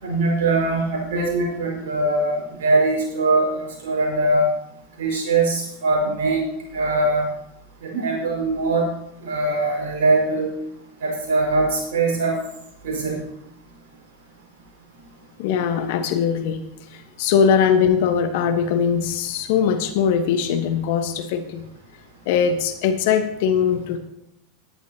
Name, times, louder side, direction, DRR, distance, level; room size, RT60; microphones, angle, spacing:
voice 1, 0.0-4.5 5.0-6.5 6.7-7.3 7.8-8.9 9.2-10.5 11.0-12.4 12.8-13.2, right 2 dB, 65° right, -1 dB, 5.4 m, -21 dB
voice 2, 15.4-16.6 16.9-21.6 22.3-24.0, left 7 dB, 60° left, 8 dB, 1.3 m, -21 dB
17.5 x 11.0 x 2.9 m, 0.81 s
figure-of-eight pair, 85°, 0 cm